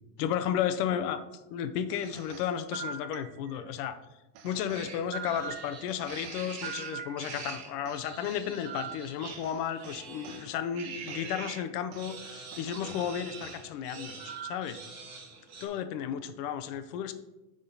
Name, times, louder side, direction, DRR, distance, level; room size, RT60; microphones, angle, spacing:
voice 1, 0.2-1.2 1.5-4.0 4.4-15.2 15.6-17.1, left 9 dB, 80° left, 10 dB, 0.8 m, -33 dB
sound 1, 1.9-3.7 4.3-7.5 7.8-10.5 11.1-11.3 11.9-12.1 12.5-13.6 14.2-14.8, right 6 dB, 60° right, 1.0 m, -44 dB
sound 2, 4.7-11.6 12.0-15.7, right 4 dB, 35° right, 1.4 m, -44 dB
9.6 x 3.9 x 3.9 m, 1.0 s
supercardioid pair, 130°, 46 cm